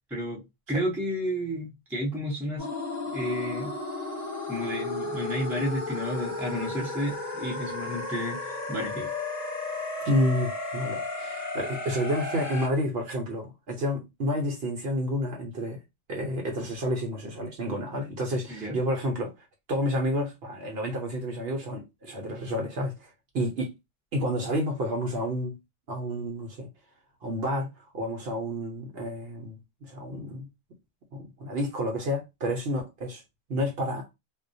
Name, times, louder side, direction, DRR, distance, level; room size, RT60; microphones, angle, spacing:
voice 1, 0.1-0.4 0.7-2.7 3.1-3.7 4.5-9.1 18.5-18.8, equal, ahead, 0.5 m, -31 dB
sound 1, 2.6-12.7, left 2 dB, 35° left, 0.9 m, -34 dB
voice 2, 10.0-15.8 16.1-19.3 19.7-23.7 24.1-25.6 25.9-26.7 27.2-27.7 27.9-30.5 31.1-33.2 33.5-34.1, equal, 60° right, 0.8 m, -30 dB
2.2 x 2.1 x 2.6 m
omnidirectional pair, 1.3 m